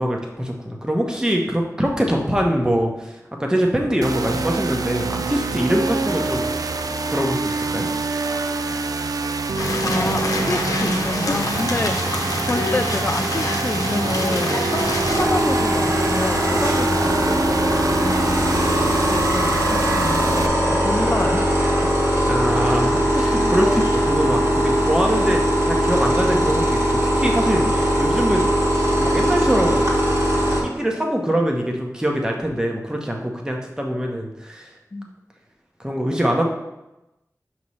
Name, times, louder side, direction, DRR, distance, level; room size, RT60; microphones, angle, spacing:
voice 1, 0.0-6.5 7.1-7.9 22.3-28.5 29.0-29.9 30.5-34.7 35.8-36.5, equal, 10° right, 0 dB, 0.9 m, -23 dB
sound 1, 4.0-20.5, right 3 dB, 80° right, 0.4 m, -26 dB
sound 2, 9.6-15.2, left 2 dB, 75° left, 0.8 m, -26 dB
voice 2, 9.8-14.7 15.1-17.6 18.0-18.3 18.6-20.6 20.8-21.4 23.1-23.5 34.9-35.1, left 2 dB, 30° left, 8 dB, 0.3 m, -28 dB
sound 3, 14.8-30.6, equal, 50° right, 1.7 m, -20 dB
5.6 x 3.2 x 5.5 m, 0.95 s
wide cardioid pair, 65°, 6 cm